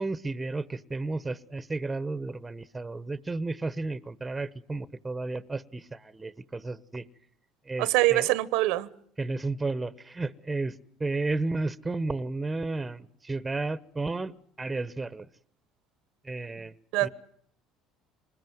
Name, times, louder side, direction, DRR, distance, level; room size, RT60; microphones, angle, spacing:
voice 1, 0.0-7.0 7.7-8.4 9.2-14.3 14.6-15.3 16.2-16.7 17.0-17.1, right 3 dB, 15° right, 1.1 m, -33 dB
voice 2, 7.8-8.9 16.9-17.1, right 18 dB, 80° right, 1.0 m, -24 dB
25.5 x 20.5 x 9.4 m
supercardioid pair, 100°, 0 cm